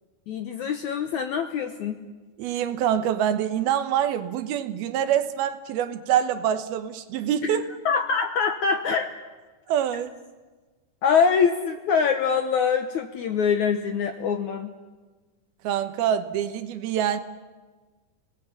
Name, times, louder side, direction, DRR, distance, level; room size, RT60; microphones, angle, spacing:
voice 1, 0.3-2.0 7.4-7.6 7.9-9.1 11.0-14.8, left 6 dB, 70° left, 6 dB, 1.9 m, -24 dB
voice 2, 2.4-7.7 9.7-10.1 15.6-17.2, right 10 dB, 75° right, 10 dB, 3.0 m, -25 dB
29.5 x 19.5 x 8.6 m, 1.3 s
omnidirectional pair, 4.6 m